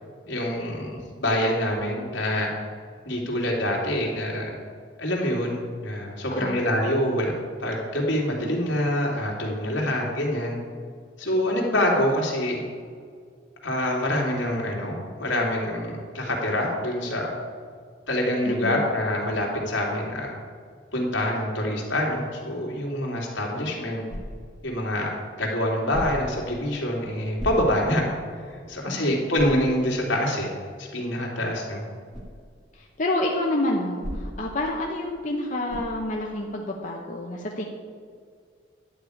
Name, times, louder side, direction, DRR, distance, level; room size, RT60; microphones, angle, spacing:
voice 1, 0.3-2.5 3.0-4.5 5.0-10.6 11.2-12.6 13.6-17.3 18.1-20.3 20.9-24.0 24.6-25.1 25.4-28.0 28.5-30.5 30.8-31.8, left 1 dB, 75° left, -2 dB, 2.7 m, -26 dB
voice 2, 6.3-6.6 18.4-18.9 28.8-29.2 32.7-37.6, left 1 dB, 40° left, -1 dB, 0.9 m, -28 dB
sound 1, 24.1-24.6 25.9-26.4 27.4-28.0 28.5-28.6 29.3-29.7 32.1-32.4 34.0-34.5 35.7-36.0, equal, ahead, 2.4 m, -35 dB
11.5 x 4.9 x 8.5 m, 2.1 s
head